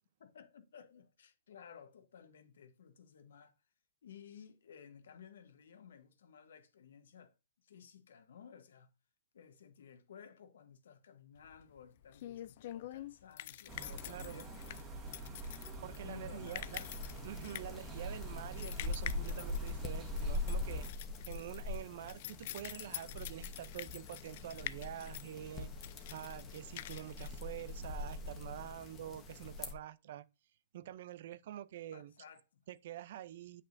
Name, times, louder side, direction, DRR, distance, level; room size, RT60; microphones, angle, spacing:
voice 1, 0.2-3.5 4.0-7.3 7.6-8.9 9.3-14.5 15.1-17.0 31.9-32.6, left 7 dB, 75° left, 1.1 m, -56 dB
sound 1, 11.4-28.2, left 14 dB, 45° left, 0.3 m, -47 dB
sound 2, 13.7-20.9, right 2 dB, 15° right, 2.1 m, -47 dB
voice 2, 14.1-14.5 15.8-16.8 17.2-20.9 21.3-30.2 30.7-32.1 32.7-33.6, right 12 dB, 50° right, 0.5 m, -47 dB
sound 3, 16.7-29.7, left 2 dB, 20° left, 1.1 m, -43 dB
8.4 x 5.4 x 2.6 m
hypercardioid pair, 155°, 0 cm